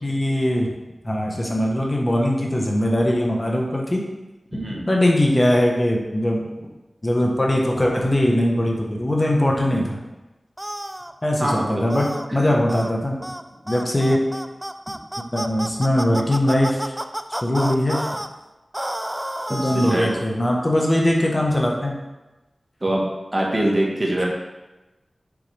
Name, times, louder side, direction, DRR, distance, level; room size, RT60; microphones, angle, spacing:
voice 1, 0.0-0.7 1.0-4.0 4.9-6.5 7.0-10.0 11.2-13.2 13.7-14.2 15.3-16.9 17.4-18.0 19.5-22.0, left 1 dB, 35° left, -1 dB, 1.4 m, -21 dB
voice 2, 4.5-4.9 11.4-11.9 12.3-12.4 19.5-20.3 22.8-24.3, right 1 dB, 35° right, -2 dB, 1.7 m, -24 dB
sound 1, 10.6-11.1 11.9-12.3 12.7-12.9 13.2-13.4 13.7-18.3 18.7-20.2, right 1 dB, 15° right, 0.4 m, -30 dB
7.1 x 5.8 x 3.6 m, 1.1 s
cardioid pair, 40°, 0 cm